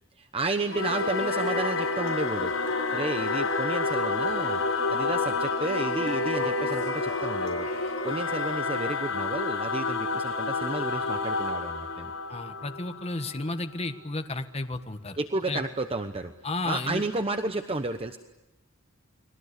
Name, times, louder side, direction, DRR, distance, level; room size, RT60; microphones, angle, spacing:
voice 1, 0.2-4.6 4.9-12.1 15.2-16.3 16.6-18.2, right 2 dB, 30° right, 7 dB, 1.0 m, -32 dB
Singing / Musical instrument, 0.7-13.6, left 3 dB, 90° left, 5.5 m, -29 dB
voice 2, 12.3-15.2 15.5-15.6 16.4-17.0, left 2 dB, 30° left, 7 dB, 1.5 m, -32 dB
30.0 x 22.0 x 8.4 m, 1.1 s
head